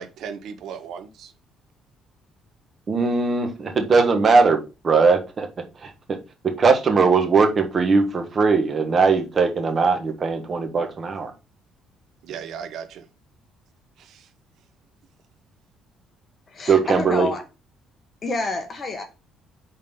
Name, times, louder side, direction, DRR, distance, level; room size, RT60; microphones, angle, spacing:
voice 1, 0.0-1.3 12.2-13.1 14.0-14.3, right 7 dB, 65° right, 0.7 m, -36 dB
voice 2, 2.9-5.5 5.8-6.2 6.4-11.3 16.7-17.3, right 4 dB, 30° right, 1.2 m, -20 dB
voice 3, 16.5-17.4 18.2-19.0, left 3 dB, 30° left, 1.4 m, -28 dB
5.4 x 4.0 x 5.3 m
cardioid pair, 140°, 0 cm